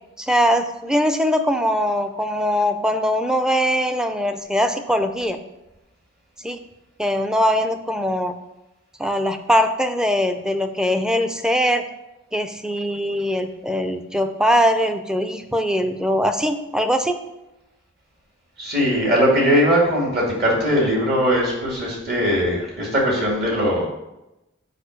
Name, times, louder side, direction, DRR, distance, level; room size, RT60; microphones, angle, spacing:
voice 1, 0.2-5.4 6.4-6.6 7.0-8.3 9.0-11.9 12.3-17.2, equal, 5° right, 7 dB, 0.5 m, -21 dB
voice 2, 18.6-23.9, equal, 50° right, -3 dB, 2.4 m, -20 dB
6.6 x 4.9 x 6.5 m, 0.95 s
head